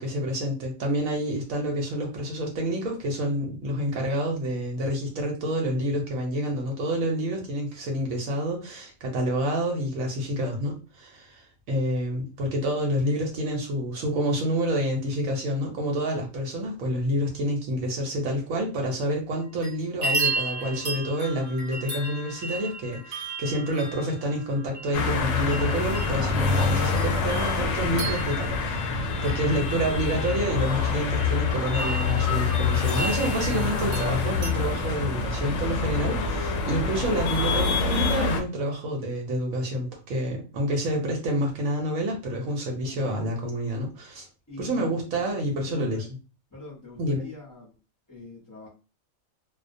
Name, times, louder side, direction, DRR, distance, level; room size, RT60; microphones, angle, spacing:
voice 1, 0.0-44.3 44.6-46.1 47.0-47.3, equal, 80° right, 0 dB, 1.0 m, -28 dB
sound 1, 19.3-19.7 20.0-34.5, right 3 dB, 55° right, 0.9 m, -35 dB
sound 2, 24.9-38.4, left 4 dB, 65° left, 0.8 m, -26 dB
voice 2, 44.5-44.9 45.7-46.1 46.5-47.7 48.1-48.7, left 3 dB, 20° left, -6 dB, 0.6 m, -43 dB
2.3 x 2.1 x 2.5 m, 0.33 s
omnidirectional pair, 1.4 m